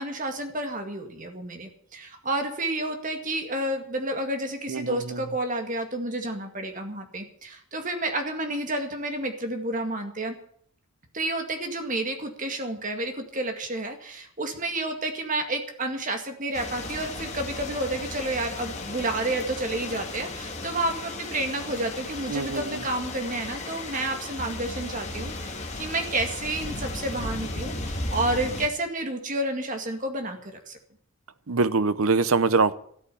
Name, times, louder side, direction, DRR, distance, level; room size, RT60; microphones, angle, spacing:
voice 1, 0.0-10.4 11.1-30.8, right 2 dB, 35° right, 2.1 m, -30 dB
voice 2, 4.7-5.2 22.3-22.8 31.5-32.8, right 4 dB, 80° right, 0.8 m, -24 dB
sound 1, 16.5-28.7, left 2 dB, 30° left, 2.2 m, -35 dB
13.0 x 8.6 x 9.9 m
head